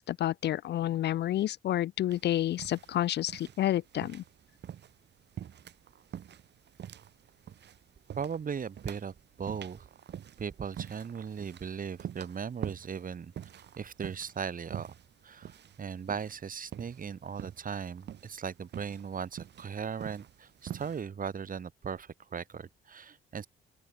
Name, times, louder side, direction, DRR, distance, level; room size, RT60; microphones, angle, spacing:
voice 1, 0.0-4.2, left 13 dB, 60° left, 0.4 m, -30 dB
sound 1, 2.1-21.0, right 9 dB, 60° right, 2.0 m, -46 dB
voice 2, 8.1-9.9 10.4-13.3 13.8-14.9 15.2-23.5, right 6 dB, 45° right, 2.8 m, -38 dB
open air
cardioid pair, 90°, 20 cm